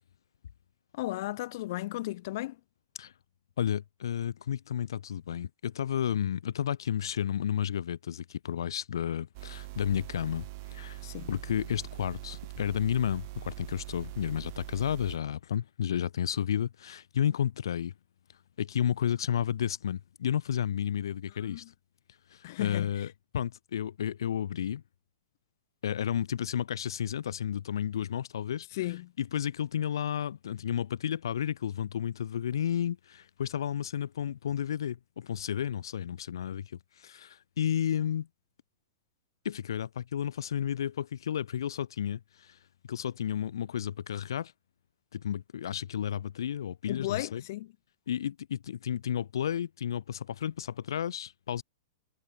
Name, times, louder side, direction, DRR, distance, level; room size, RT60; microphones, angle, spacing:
voice 1, 0.9-2.6 11.0-11.3 21.4-21.7 22.4-23.1 28.7-29.1 46.9-47.7, left 17 dB, 50° left, 3.3 m, -35 dB
voice 2, 3.6-11.0 11.3-17.9 18.6-21.6 22.3-24.8 25.8-28.7 29.2-38.3 39.4-42.6 42.9-44.5 45.1-47.4 48.1-51.6, left 9 dB, 85° left, 4.6 m, -32 dB
sound 1, 9.3-15.2, right 22 dB, 45° right, 2.2 m, -43 dB
supercardioid pair, 160°, 2 cm